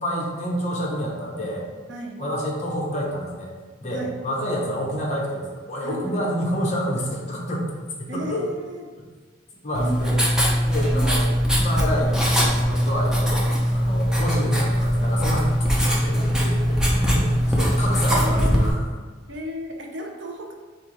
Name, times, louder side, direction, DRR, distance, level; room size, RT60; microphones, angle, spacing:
voice 1, 0.0-1.7 2.2-3.5 3.8-8.5 9.6-10.2 10.6-18.9, equal, 35° left, -2 dB, 0.9 m, -28 dB
voice 2, 1.9-2.2 3.9-4.2 5.8-6.2 8.1-8.8 9.8-9.9 10.9-11.3 15.8-16.3 16.6-17.0 18.1-18.8 19.3-20.5, equal, 60° right, 2 dB, 0.6 m, -34 dB
Writing, 9.7-18.7, equal, 5° right, 0.5 m, -21 dB
4.5 x 3.6 x 3.2 m, 1.5 s
head